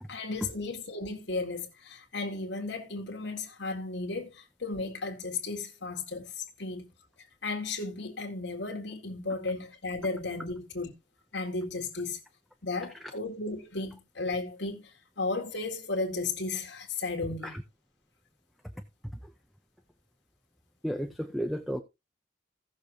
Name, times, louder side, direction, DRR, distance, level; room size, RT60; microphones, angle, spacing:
voice 1, 0.1-6.9 7.2-10.9 11.3-12.2 12.6-17.5, left 3 dB, 90° left, 1.9 m, -34 dB
voice 2, 20.8-21.8, equal, ahead, 0.6 m, -33 dB
16.5 x 6.6 x 2.9 m
head